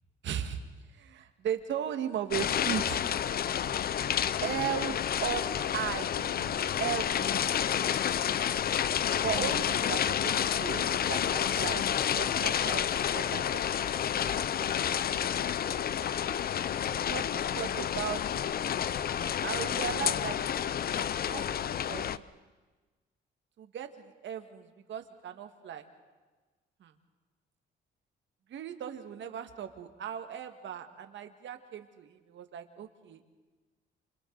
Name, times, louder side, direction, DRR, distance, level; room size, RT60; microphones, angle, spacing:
voice 1, 0.2-0.6 1.0-3.0 4.4-5.0 5.2-5.4 5.7-7.5 9.2-10.3 10.6-11.9 12.1-13.6 17.1-18.2 19.4-22.3 23.6-23.9 24.2-25.8 26.8-26.9 28.5-33.2, right 9 dB, 70° right, 7 dB, 1.7 m, -37 dB
sound 1, 2.3-22.2, left 9 dB, 50° left, 0.6 m, -30 dB
sound 2, 12.1-19.8, equal, 25° left, 6.4 m, -55 dB
29.0 x 26.0 x 4.0 m, 1.3 s
cardioid pair, 90°, 20 cm